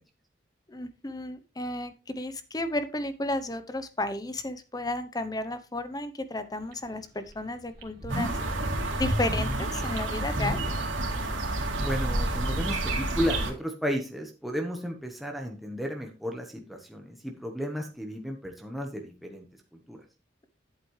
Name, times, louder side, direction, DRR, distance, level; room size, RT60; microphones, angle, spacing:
voice 1, 0.7-8.3 9.0-10.6, left 1 dB, 20° left, 11 dB, 0.8 m, -33 dB
sound 1, 6.7-6.8 7.3-7.4 7.7-8.5 9.0-11.2 11.5-11.6, equal, 45° right, 2.5 m, -33 dB
sound 2, 8.1-13.5, right 2 dB, 85° right, 2.7 m, -29 dB
voice 2, 11.8-19.4 19.9-20.0, equal, ahead, 2 dB, 1.1 m, -33 dB
11.0 x 8.3 x 3.2 m, 0.30 s
head